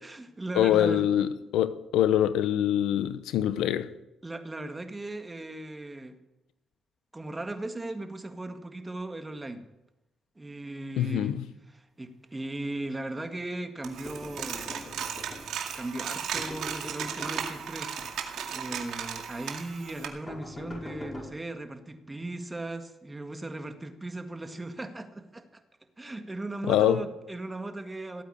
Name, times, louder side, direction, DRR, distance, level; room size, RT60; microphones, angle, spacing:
voice 1, 0.0-1.1 4.2-6.2 7.1-9.6 10.4-14.9 15.7-17.9 18.5-25.6 26.0-28.2, right 2 dB, 15° right, 1.8 m, -37 dB
voice 2, 0.5-3.9 11.0-11.4 26.7-27.0, left 11 dB, 90° left, 0.8 m, -24 dB
Coin (dropping), 13.8-20.1, right 8 dB, 75° right, 2.2 m, -36 dB
sound 1, 14.0-15.8 16.3-17.6 18.0-18.9 19.4-19.6 20.3-21.3, left 2 dB, 25° left, 5.3 m, -43 dB
17.0 x 8.7 x 9.0 m
cardioid pair, 90°, 0 cm